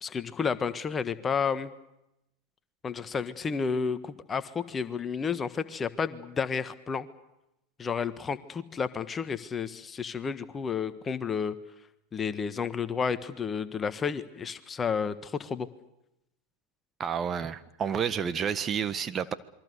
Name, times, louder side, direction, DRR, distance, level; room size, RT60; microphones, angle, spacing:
voice 1, 0.0-1.7 2.8-7.1 7.8-11.6 12.1-15.7, left 6 dB, 25° left, 12 dB, 1.4 m, -31 dB
voice 2, 17.0-19.3, right 7 dB, 30° right, 12 dB, 1.5 m, -30 dB
27.5 x 23.0 x 6.8 m, 0.87 s
hypercardioid pair, 90°, 0 cm